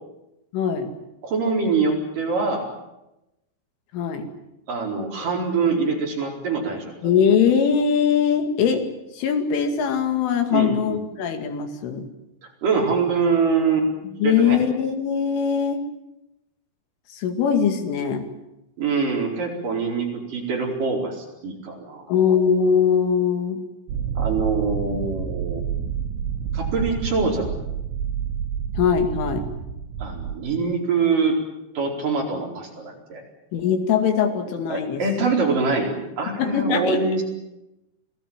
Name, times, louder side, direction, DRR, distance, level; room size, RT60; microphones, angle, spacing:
voice 1, 0.5-0.9 3.9-4.3 7.0-8.8 9.1-12.1 14.2-15.8 17.1-18.2 22.1-23.6 28.8-29.5 33.5-35.0 36.4-37.0, left 7 dB, 85° left, 6 dB, 4.8 m, -21 dB
voice 2, 1.2-2.7 4.7-6.9 10.5-11.0 12.6-13.9 14.2-14.6 18.8-22.1 24.1-25.6 26.5-27.7 30.0-31.4 31.7-33.2 34.7-37.2, right 4 dB, 45° right, 0 dB, 5.8 m, -24 dB
sound 1, 23.9-30.3, right 7 dB, 75° right, 4.3 m, -28 dB
27.0 x 18.5 x 9.0 m, 0.93 s
omnidirectional pair, 5.5 m